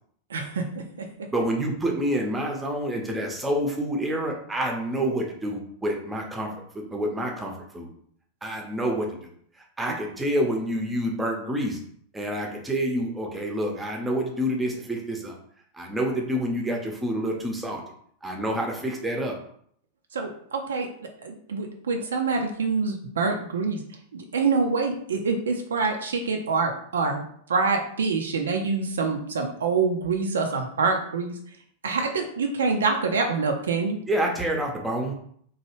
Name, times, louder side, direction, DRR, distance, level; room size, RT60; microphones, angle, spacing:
voice 1, 0.3-1.1 20.1-23.8 24.1-27.2 27.5-31.4 31.8-34.0, right 4 dB, 65° right, 3 dB, 0.4 m, -26 dB
voice 2, 1.3-7.9 8.4-9.3 9.8-11.8 12.1-15.3 15.7-17.8 18.2-19.3 34.1-35.1, equal, 10° right, 1 dB, 0.7 m, -28 dB
3.0 x 2.2 x 3.0 m, 0.63 s
figure-of-eight pair, 90°, 0 cm